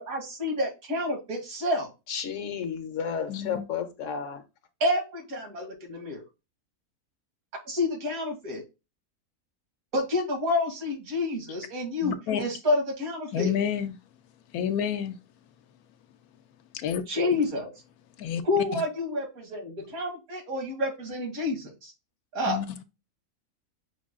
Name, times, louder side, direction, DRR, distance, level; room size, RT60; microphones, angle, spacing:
voice 1, 0.0-1.9 4.8-6.2 7.7-8.6 9.9-13.5 17.1-17.7 18.4-21.9 22.3-22.6, left 2 dB, 70° right, 2.0 m, -29 dB
voice 2, 2.1-4.4, left 7 dB, 65° left, 1.0 m, -32 dB
voice 3, 3.3-3.6 12.0-12.4 13.3-14.0 14.5-15.2 16.7-17.0 18.2-18.4 18.7-18.8 22.5-22.8, left 8 dB, 80° left, 1.1 m, -29 dB
5.7 x 2.3 x 3.6 m
omnidirectional pair, 1.6 m